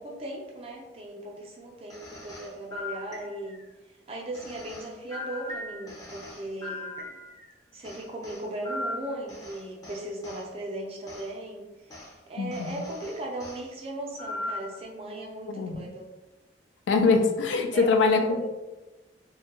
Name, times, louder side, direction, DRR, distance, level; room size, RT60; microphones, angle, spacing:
voice 1, 0.0-3.6 4.1-6.9 7.7-12.0 12.3-16.1 17.7-18.5, right 1 dB, 35° right, -2 dB, 0.4 m, -38 dB
sound 1, 1.9-3.7 4.3-7.5 7.8-10.4 11.1-11.3 11.9-12.1 12.5-13.6 14.2-14.8, left 2 dB, 20° left, 0.5 m, -39 dB
voice 2, 12.4-12.8 15.5-15.9 16.9-18.5, left 4 dB, 90° left, 6 dB, 0.3 m, -23 dB
2.2 x 2.2 x 2.9 m, 1.1 s
head